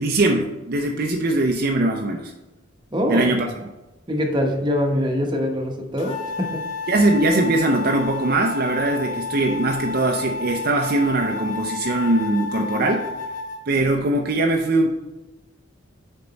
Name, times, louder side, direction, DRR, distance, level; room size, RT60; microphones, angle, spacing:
voice 1, 0.0-2.3 3.1-3.5 6.9-13.0 13.7-14.9, right 2 dB, 50° right, 2 dB, 0.6 m, -21 dB
voice 2, 2.9-3.3 4.1-6.6, equal, 25° right, 1 dB, 1.0 m, -23 dB
sound 1, 6.0-13.6, left 4 dB, 40° left, 1.0 m, -31 dB
6.9 x 4.5 x 4.0 m, 1.0 s
head